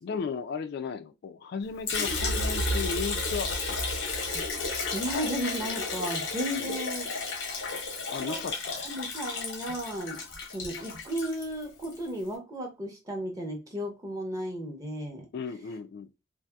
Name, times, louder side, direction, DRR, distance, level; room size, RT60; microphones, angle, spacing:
voice 1, 0.0-3.8 6.5-6.8 8.1-8.8 15.3-16.1, left 5 dB, 55° left, 0.3 m, -35 dB
Liquid, 1.9-12.0, left 4 dB, 90° left, 0.9 m, -33 dB
sound 1, 2.0-5.9, right 2 dB, 85° right, 0.4 m, -35 dB
voice 2, 4.9-7.1 8.2-8.4 8.8-10.2 10.5-15.3, equal, 20° right, 0.6 m, -34 dB
2.7 x 2.5 x 2.3 m
head